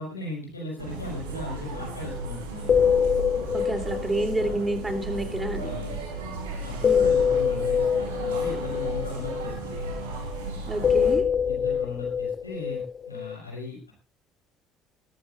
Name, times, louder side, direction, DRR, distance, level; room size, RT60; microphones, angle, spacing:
voice 1, 0.0-2.7 5.6-6.0 6.6-9.8 11.5-13.9, left 2 dB, 85° left, -1 dB, 5.5 m, -37 dB
sound 1, 0.8-11.2, right 3 dB, 75° right, 4.0 m, -35 dB
sound 2, 1.8-1.9 2.1-2.3 2.6-5.9 6.8-10.5 10.8-13.4, left 7 dB, 40° left, 0.6 m, -25 dB
voice 2, 3.5-5.8 6.8-7.1 10.7-11.2, right 1 dB, 15° right, 7 dB, 3.2 m, -29 dB
20.5 x 14.5 x 2.6 m, 0.31 s
figure-of-eight pair, 50°, 0 cm